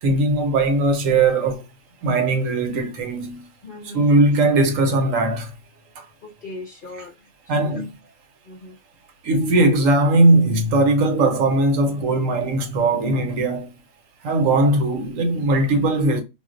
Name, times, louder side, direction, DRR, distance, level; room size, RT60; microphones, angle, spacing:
voice 1, 0.0-1.6 2.0-3.4 3.9-5.5 6.0-6.1 7.5-7.9 9.2-13.7 14.2-16.2, right 2 dB, 70° right, 1.0 m, -19 dB
voice 2, 3.6-4.2 6.2-7.8 8.4-8.8, left 2 dB, 50° left, 0.7 m, -39 dB
2.5 x 2.0 x 3.6 m
omnidirectional pair, 1.5 m